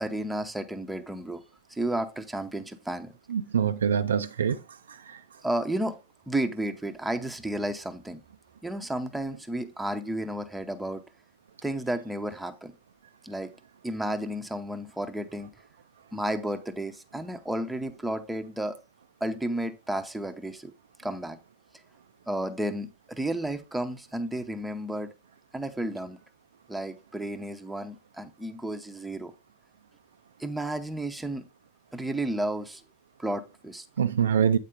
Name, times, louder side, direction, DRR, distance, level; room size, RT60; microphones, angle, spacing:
voice 1, 0.0-1.4 1.7-3.2 5.4-6.0 6.3-8.2 8.6-11.0 11.6-12.7 13.2-13.5 13.8-15.5 16.1-18.8 19.2-20.7 21.0-21.4 22.3-25.1 25.5-26.2 26.7-29.3 30.4-31.5 31.9-32.8 33.2-33.8, right 1 dB, 5° right, 0.8 m, -32 dB
voice 2, 3.3-4.6 34.0-34.6, right 7 dB, 65° right, 0.4 m, -24 dB
8.5 x 4.4 x 3.4 m
figure-of-eight pair, 90°, 0 cm